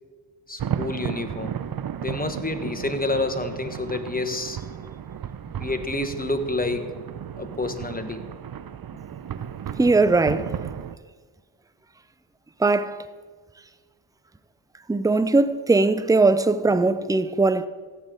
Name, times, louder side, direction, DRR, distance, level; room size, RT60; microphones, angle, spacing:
voice 1, 0.5-1.5 2.0-4.6 5.6-6.8 7.4-8.2, left 2 dB, 20° left, 1.4 m, -28 dB
sound 1, 0.6-11.0, right 9 dB, 50° right, 0.6 m, -34 dB
voice 2, 9.8-10.5 12.6-13.0 14.9-17.7, right 3 dB, 10° right, 0.6 m, -20 dB
15.5 x 8.6 x 3.9 m
supercardioid pair, 40°, 47 cm